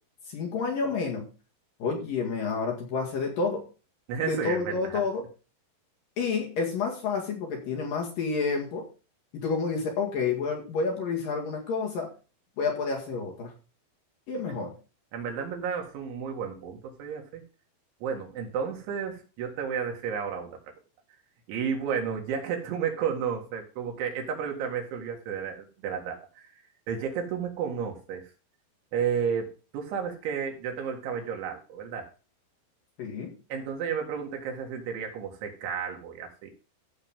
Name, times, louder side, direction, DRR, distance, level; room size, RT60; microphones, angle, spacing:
voice 1, 0.3-1.3 1.8-3.6 4.2-5.2 6.2-8.9 9.4-12.1 12.6-13.5 14.3-14.7 33.0-33.3, left 4 dB, 55° left, -1 dB, 3.4 m, -29 dB
voice 2, 4.1-5.0 15.1-17.4 18.0-20.6 21.5-26.5 26.9-28.3 28.9-32.1 33.5-36.5, right 7 dB, 75° right, 2 dB, 4.3 m, -32 dB
15.0 x 6.5 x 3.7 m, 0.34 s
omnidirectional pair, 5.5 m